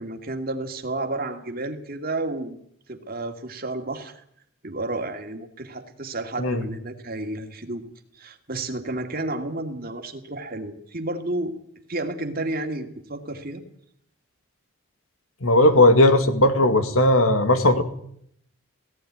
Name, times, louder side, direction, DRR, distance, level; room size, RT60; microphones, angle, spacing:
voice 1, 0.0-2.6 2.9-4.2 4.6-7.8 8.1-11.5 11.9-13.6, right 2 dB, 45° right, 4 dB, 2.5 m, -31 dB
voice 2, 15.4-17.8, left 1 dB, 80° left, 8 dB, 2.3 m, -17 dB
17.5 x 16.0 x 9.6 m, 0.69 s
head